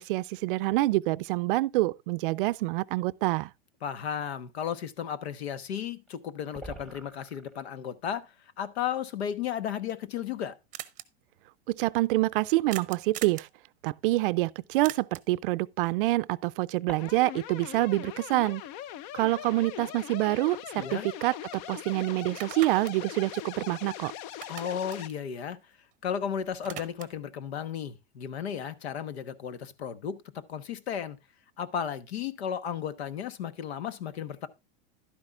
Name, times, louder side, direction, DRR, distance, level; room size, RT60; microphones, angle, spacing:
voice 1, 0.0-3.5 11.7-13.5 13.8-18.6 19.1-21.3 21.7-24.1, right 18 dB, 60° right, 0.5 m, -27 dB
sound 1, 3.2-3.3 5.8-5.9 6.1-6.2 6.4-7.8 9.2-9.3 10.1-10.2 12.1-12.4 13.7-13.8 15.8-17.5, right 2 dB, ahead, 1.1 m, -47 dB
voice 2, 3.8-8.3 8.6-10.6 20.8-21.1 24.5-25.6 26.0-31.2 31.6-34.5, left 8 dB, 90° left, 1.2 m, -34 dB
sound 2, 10.0-10.1 10.3-10.4 10.7-11.0 12.7-13.5 14.8-15.4 19.6-19.7 20.1-21.2 21.5-21.6 22.2-24.0 24.3-26.1 26.4-27.3, right 14 dB, 25° right, 0.7 m, -43 dB
sound 3, 17.0-25.1, left 11 dB, 45° left, 0.5 m, -41 dB
11.5 x 9.8 x 2.4 m
supercardioid pair, 145°, 31 cm